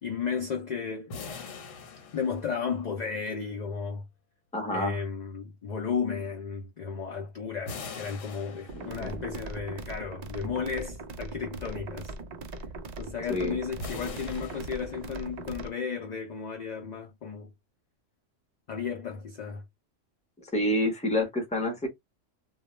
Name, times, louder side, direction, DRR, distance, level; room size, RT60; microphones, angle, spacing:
voice 1, 0.0-1.1 2.1-4.1 4.7-12.1 13.0-17.5 18.7-19.6, left 6 dB, 65° left, 0.4 m, -34 dB
sound 1, 1.1-3.0 7.7-9.3 13.8-15.4, left 4 dB, 85° left, 1.1 m, -42 dB
voice 2, 4.5-5.0 8.7-9.3 13.3-13.6 20.4-21.9, left 1 dB, 10° left, 0.5 m, -29 dB
sound 2, 8.7-15.7, right 2 dB, 85° right, 0.3 m, -40 dB
2.3 x 2.0 x 3.0 m
omnidirectional pair, 1.3 m